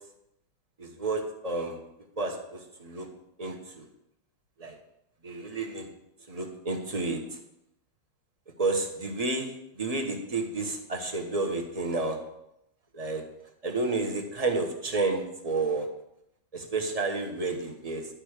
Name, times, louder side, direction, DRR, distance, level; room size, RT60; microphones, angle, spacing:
voice 1, 0.8-1.8 2.2-3.1 3.4-3.9 4.6-4.8 5.2-5.9 6.3-7.4 8.6-12.2 12.9-13.2 13.6-15.9 16.5-18.1, right 3 dB, 25° right, 2 dB, 1.0 m, -31 dB
12.0 x 5.4 x 6.5 m, 0.82 s
omnidirectional pair, 2.2 m